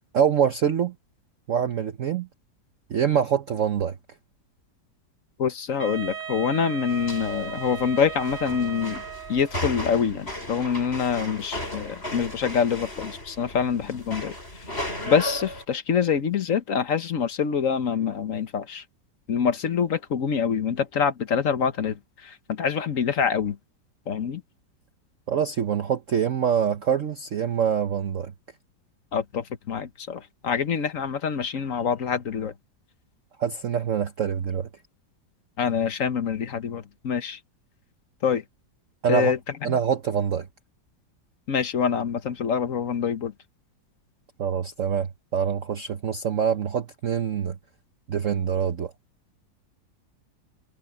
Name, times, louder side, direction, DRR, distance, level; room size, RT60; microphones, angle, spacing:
voice 1, 0.1-0.9 1.5-2.3 2.9-4.0 25.3-28.3 33.4-34.7 39.0-39.3 39.6-40.5 44.4-47.6 48.1-48.9, right 8 dB, 55° right, 1.1 m, -25 dB
voice 2, 5.4-9.0 9.3-14.6 15.0-18.8 19.3-23.6 24.1-24.4 29.1-32.5 35.6-37.4 38.2-38.4 39.1-39.8 41.5-43.3, left 7 dB, 50° left, 1.3 m, -26 dB
Wind instrument woodwind instrument, 5.8-9.7, right 8 dB, 80° right, 2.4 m, -37 dB
sound 1, 6.9-15.6, left 1 dB, 30° left, 8.5 m, -35 dB
omnidirectional pair, 2.0 m